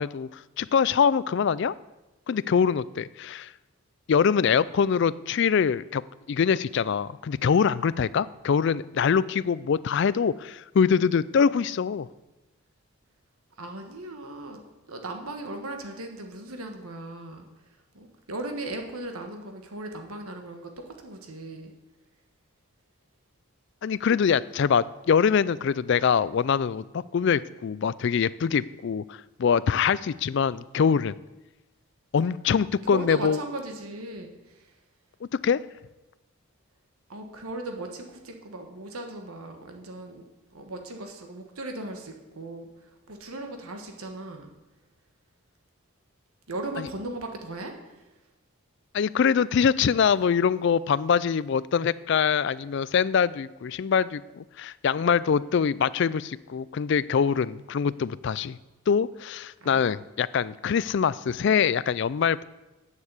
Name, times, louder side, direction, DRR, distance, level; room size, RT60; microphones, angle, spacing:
voice 1, 0.0-1.7 2.3-3.5 4.1-6.0 6.3-12.1 23.8-31.1 32.1-33.4 35.4-35.6 48.9-58.6 58.9-62.4, left 6 dB, 55° left, 19 dB, 0.3 m, -24 dB
voice 2, 13.6-14.6 14.9-17.5 17.9-21.7 32.8-34.7 37.1-40.2 40.5-44.5 46.5-48.1 59.6-59.8, right 2 dB, 80° right, 4 dB, 1.4 m, -37 dB
8.6 x 7.3 x 8.1 m, 1.0 s
head